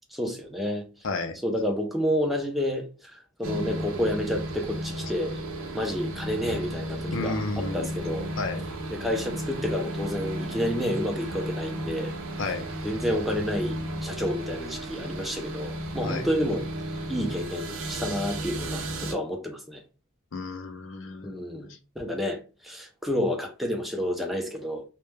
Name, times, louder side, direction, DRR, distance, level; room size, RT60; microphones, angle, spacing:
voice 1, 0.1-0.9 1.4-5.4 5.7-8.3 8.9-12.1 12.8-16.7 17.1-19.8 21.2-21.7 22.0-24.8, equal, ahead, 0.4 m, -30 dB
voice 2, 1.0-1.4 7.1-7.9 8.4-8.6 12.4-12.7 16.0-16.3 20.3-21.8, left 3 dB, 65° left, 0.5 m, -32 dB
sound 1, 3.4-19.1, right 1 dB, 90° right, 0.5 m, -34 dB
2.2 x 2.1 x 3.1 m
head